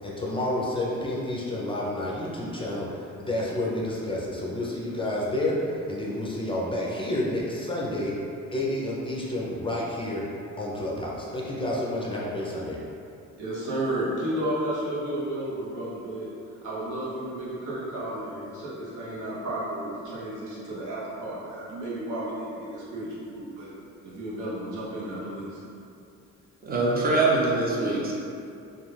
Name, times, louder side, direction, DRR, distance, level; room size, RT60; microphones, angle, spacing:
voice 1, 0.0-8.2 8.5-10.3 10.6-12.8, left 1 dB, 20° left, -5 dB, 0.4 m, -30 dB
voice 2, 13.4-16.3 16.6-23.7 24.0-25.6, right 1 dB, 85° right, -7 dB, 0.9 m, -32 dB
voice 3, 26.6-28.1, right 2 dB, 30° right, -5 dB, 0.7 m, -23 dB
2.3 x 2.3 x 3.2 m, 2.5 s
cardioid pair, 90°, 30 cm